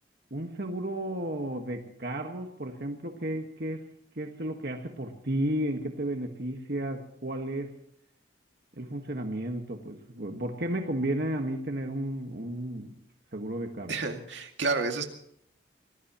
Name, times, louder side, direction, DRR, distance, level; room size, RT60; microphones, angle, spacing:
voice 1, 0.3-3.8 4.1-7.7 8.8-12.9 13.3-13.9, right 1 dB, 55° right, 3 dB, 1.6 m, -33 dB
voice 2, 13.9-15.0, right 3 dB, 75° right, 4 dB, 2.2 m, -30 dB
25.0 x 18.5 x 3.0 m, 0.70 s
head